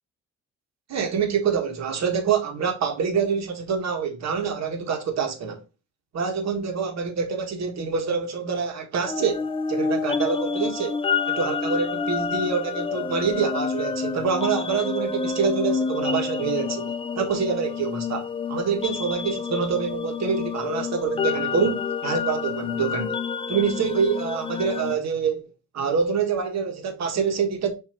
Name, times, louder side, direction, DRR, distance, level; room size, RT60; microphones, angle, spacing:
voice 1, 0.9-5.6 6.1-11.0 11.2-23.2 23.5-25.5 25.7-27.7, right 6 dB, 60° right, 1.5 m, -26 dB
sound 1, 9.1-24.9, left 5 dB, 20° left, 0.4 m, -28 dB
6.0 x 3.0 x 2.9 m
cardioid pair, 90°, 30 cm